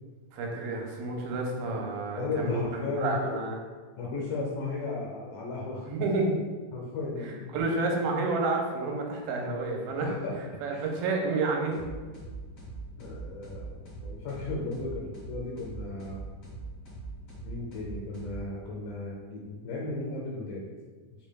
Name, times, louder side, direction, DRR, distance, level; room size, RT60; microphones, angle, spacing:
voice 1, 0.3-3.6 5.9-6.3 7.2-10.1 10.6-11.7, right 3 dB, 90° right, 0 dB, 2.4 m, -30 dB
voice 2, 2.1-3.3 4.0-5.9 6.7-7.6 9.9-10.4 10.7-10.8 13.0-16.2 17.4-20.7, left 3 dB, 80° left, -3 dB, 2.0 m, -35 dB
sound 1, 11.7-18.9, right 3 dB, 50° left, 1.3 m, -42 dB
5.1 x 3.7 x 2.2 m, 1.4 s
omnidirectional pair, 4.1 m